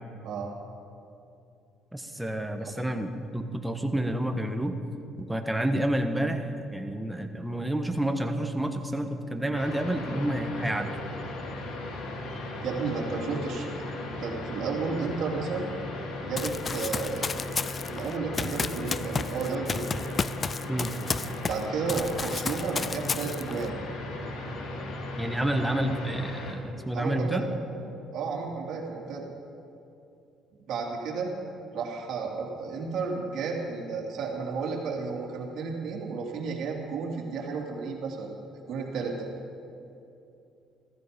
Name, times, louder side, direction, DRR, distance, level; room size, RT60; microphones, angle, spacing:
voice 1, 1.9-4.8 5.2-10.9 20.7-20.9 25.2-27.4, right 1 dB, 5° right, 6 dB, 1.3 m, -29 dB
sound 1, 9.2-27.9, left 3 dB, 50° left, 1.2 m, -50 dB
sound 2, 9.5-26.5, left 2 dB, 75° left, 2.2 m, -37 dB
voice 2, 12.6-13.7 13.9-15.7 16.2-17.5 17.9-19.9 21.5-23.7 26.9-27.4 28.1-29.3 30.6-31.3 31.7-38.3 38.7-39.3, right 5 dB, 65° right, -1 dB, 2.9 m, -32 dB
Run, 16.4-21.6 21.9-23.7, left 5 dB, 30° left, 0.4 m, -32 dB
15.0 x 14.0 x 5.3 m, 2.7 s
cardioid pair, 105°, 0 cm